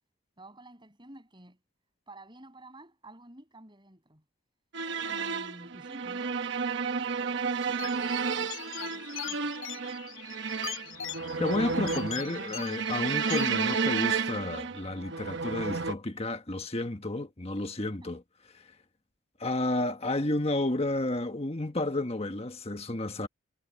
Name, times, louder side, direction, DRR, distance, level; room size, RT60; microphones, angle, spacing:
voice 1, 0.4-1.6 2.1-4.2 5.0-9.5 18.0-18.1, right 1 dB, 20° right, 7.2 m, -52 dB
sound 1, 4.7-15.9, right 5 dB, 55° right, 1.1 m, -32 dB
sound 2, 7.8-13.8, left 10 dB, 70° left, 1.0 m, -41 dB
voice 2, 11.4-18.2 19.4-23.3, left 2 dB, 30° left, 1.4 m, -31 dB
head